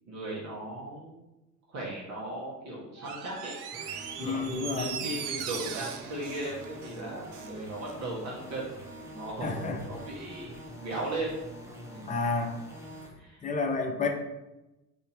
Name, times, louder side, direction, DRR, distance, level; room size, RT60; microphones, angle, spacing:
voice 1, 0.1-1.1 1.7-11.4 11.8-12.1 12.9-13.4, right 1 dB, 35° right, -5 dB, 1.4 m, -38 dB
Door, 3.0-7.6 7.9-8.0, right 8 dB, 65° right, 0.6 m, -39 dB
sound 1, 3.7-13.1, right 1 dB, 5° right, 0.8 m, -45 dB
voice 2, 4.2-5.0 9.4-9.8 12.0-12.5 13.4-14.1, left 4 dB, 15° left, 2 dB, 0.5 m, -30 dB
3.4 x 2.7 x 4.2 m, 1.0 s
figure-of-eight pair, 70°, 47 cm